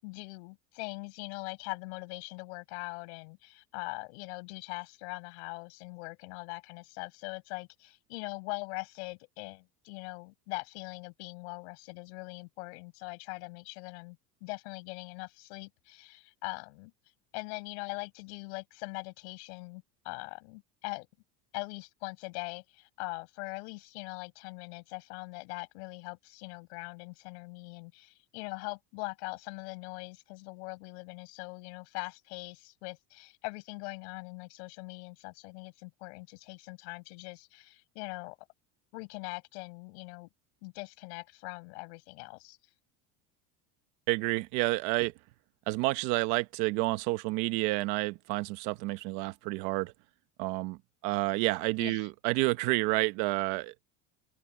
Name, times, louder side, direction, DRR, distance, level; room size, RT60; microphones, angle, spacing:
voice 1, 0.0-16.9 17.3-21.1 21.5-38.4 38.9-40.3 40.6-42.6 51.8-52.1, left 29 dB, 70° left, 7.3 m, -42 dB
voice 2, 44.1-45.1 45.7-49.9 50.4-50.8 51.0-53.7, right 21 dB, 55° right, 1.1 m, -29 dB
cardioid pair, 165°, 34 cm